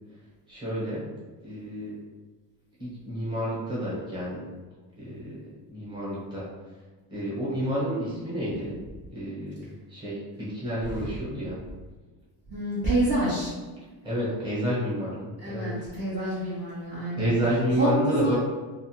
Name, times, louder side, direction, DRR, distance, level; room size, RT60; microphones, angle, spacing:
voice 1, 0.5-1.0 1.4-2.0 2.8-4.4 5.0-6.4 7.1-8.8 9.1-11.6 14.0-15.7 16.2-16.4 17.2-18.3, equal, 10° right, -9 dB, 1.0 m, -30 dB
voice 2, 12.5-13.5 15.4-17.3 17.8-18.3, right 1 dB, 35° right, -10 dB, 0.7 m, -27 dB
2.4 x 2.3 x 2.9 m, 1.3 s
cardioid pair, 150°, 46 cm